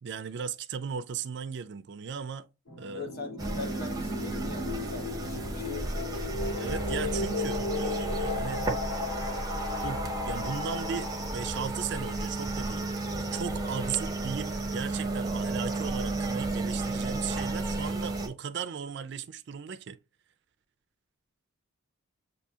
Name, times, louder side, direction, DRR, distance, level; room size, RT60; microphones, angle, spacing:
voice 1, 0.0-2.5 2.8-3.1 6.5-8.7 9.8-12.9 13.3-20.0, right 7 dB, 55° right, 0.4 m, -37 dB
sound 1, 2.7-12.1, left 3 dB, 65° left, 1.8 m, -36 dB
voice 2, 2.9-5.9, left 3 dB, 45° left, 1.0 m, -41 dB
sound 2, 3.4-18.3, right 2 dB, 15° right, 0.7 m, -33 dB
6.7 x 2.7 x 2.7 m
head